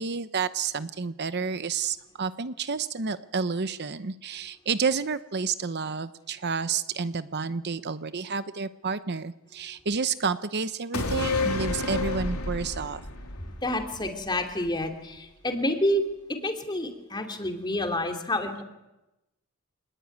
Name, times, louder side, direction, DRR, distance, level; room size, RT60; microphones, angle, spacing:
voice 1, 0.0-13.0, right 5 dB, 50° right, 12 dB, 0.8 m, -30 dB
sound 1, 10.9-14.5 14.8-14.9, left 3 dB, 90° left, 3.3 m, -30 dB
voice 2, 13.6-16.0 16.3-18.6, left 1 dB, 20° left, 5 dB, 3.0 m, -28 dB
26.5 x 20.0 x 9.4 m, 0.98 s
head